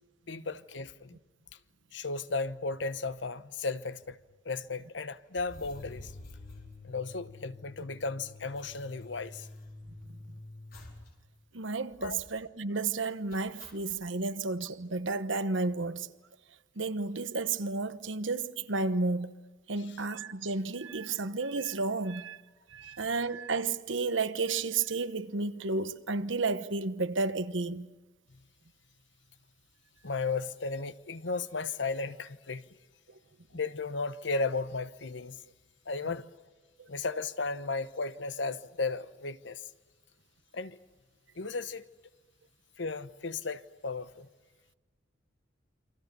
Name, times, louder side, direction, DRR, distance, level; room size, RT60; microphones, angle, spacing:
voice 1, 0.3-1.2 1.9-4.2 4.4-6.1 6.8-9.5 12.0-12.2 22.8-22.9 28.3-28.4 30.0-32.7 33.5-35.4 35.9-36.3 36.9-39.7 40.5-40.8 41.4-41.8 42.8-44.3, left 3 dB, 70° left, 1.0 m, -35 dB
sound 1, 5.3-7.5 7.8-7.9 8.1-10.2 10.7-11.1 11.4-11.5 11.9-12.4 13.3-14.0, left 1 dB, 55° left, 4.5 m, -53 dB
sound 2, 5.5-11.1, left 3 dB, 35° left, 1.6 m, -50 dB
voice 2, 11.5-16.1 16.8-19.4 19.7-22.4 22.7-27.9, right 3 dB, 80° right, 1.1 m, -32 dB
29.0 x 25.0 x 6.9 m
head